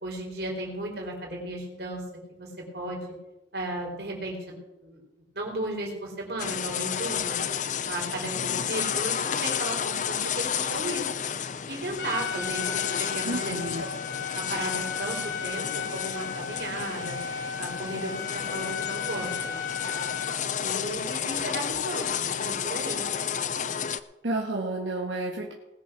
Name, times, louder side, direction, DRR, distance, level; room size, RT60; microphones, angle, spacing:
voice 1, 0.0-2.0 2.3-3.0 3.5-4.6 4.8-5.0 5.3-7.4 7.8-11.1 11.7-13.6 13.8-13.9 14.3-17.2 17.6-19.6 20.6-23.0, right 1 dB, 60° right, 0 dB, 4.2 m, -35 dB
sound 1, 6.4-24.0, left 8 dB, 40° left, 0.5 m, -31 dB
Trumpet, 12.0-20.4, left 6 dB, 60° left, 1.5 m, -35 dB
voice 2, 13.2-13.8 24.2-25.5, right 2 dB, 90° right, -1 dB, 1.8 m, -31 dB
19.5 x 6.9 x 6.2 m, 0.99 s
head